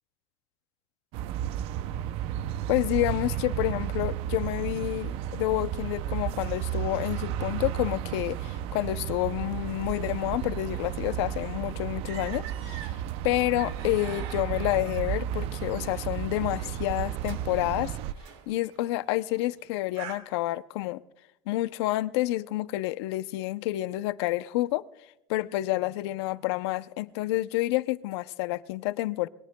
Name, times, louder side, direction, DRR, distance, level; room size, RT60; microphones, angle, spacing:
sound 1, 1.1-18.1, right 11 dB, 45° right, 0.5 m, -33 dB
voice 1, 2.7-12.9 13.2-17.9 18.5-21.0 21.5-24.8 25.3-29.3, left 17 dB, 80° left, 0.6 m, -29 dB
sound 2, 12.1-20.2, right 9 dB, 80° right, 2.1 m, -46 dB
23.5 x 21.0 x 2.2 m
cardioid pair, 175°, 14 cm